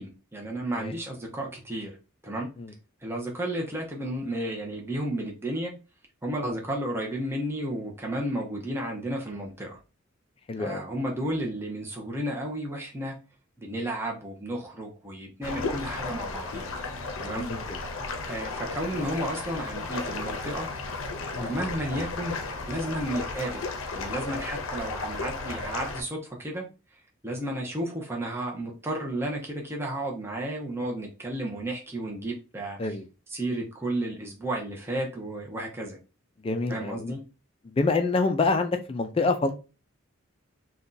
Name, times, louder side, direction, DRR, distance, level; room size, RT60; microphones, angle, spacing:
voice 1, 0.0-1.9 2.2-2.5 3.0-5.7 6.2-9.8 10.6-13.2 13.6-16.7 17.2-17.5 18.3-20.7 21.4-22.4 22.7-23.6 23.9-26.6 27.2-33.0 33.3-36.0 36.7-37.2, right 1 dB, 10° right, 0.6 m, -32 dB
voice 2, 10.5-10.8 17.3-17.6 21.3-21.5 32.8-33.0 36.4-37.1 37.8-39.5, left 3 dB, 25° left, 0.3 m, -26 dB
sound 1, 15.4-26.0, left 3 dB, 75° left, 0.6 m, -34 dB
2.6 x 2.2 x 3.8 m
head